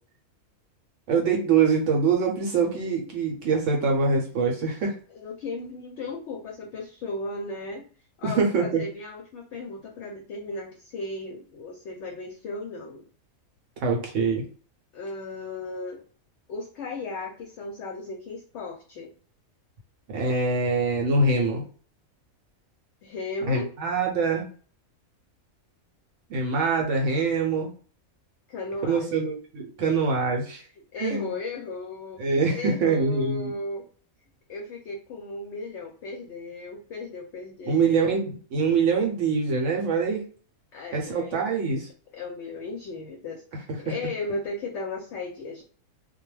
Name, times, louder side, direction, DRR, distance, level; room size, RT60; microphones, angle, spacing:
voice 1, 1.1-5.0 8.2-8.8 13.8-14.4 20.1-21.6 23.5-24.5 26.3-27.7 28.9-30.6 31.0-31.3 32.2-33.5 37.7-40.3 40.9-41.9, right 4 dB, 70° right, 1 dB, 0.9 m, -24 dB
voice 2, 5.1-7.8 8.2-13.0 14.9-16.0 16.5-19.1 23.0-23.7 28.5-29.3 29.8-29.9 30.9-33.9 34.5-38.1 40.7-41.4 42.1-45.6, left 2 dB, 65° left, 0 dB, 0.8 m, -36 dB
2.3 x 2.1 x 3.1 m, 0.41 s
omnidirectional pair, 1.5 m